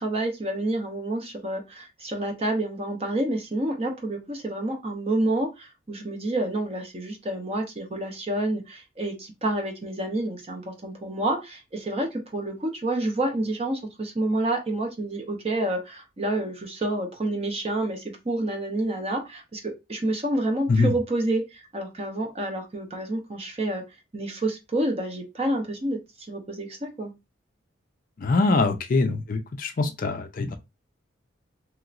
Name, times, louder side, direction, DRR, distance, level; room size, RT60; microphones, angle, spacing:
voice 1, 0.0-23.8 24.1-26.0 26.3-27.1, right 1 dB, 30° right, 0.8 m, -28 dB
voice 2, 28.2-30.6, left 3 dB, 45° left, 0.4 m, -23 dB
3.0 x 2.9 x 2.4 m
head